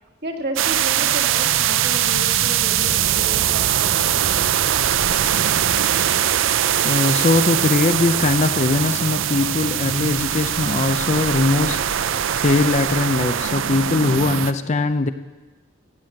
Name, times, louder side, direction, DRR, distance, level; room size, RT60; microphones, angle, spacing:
voice 1, 0.2-4.3, right 1 dB, 50° right, 2 dB, 1.8 m, -32 dB
sound 1, 0.6-14.5, right 10 dB, 65° right, 0.5 m, -21 dB
voice 2, 6.8-15.1, left 3 dB, 35° left, 11 dB, 0.5 m, -20 dB
16.0 x 9.1 x 7.7 m, 1.2 s
head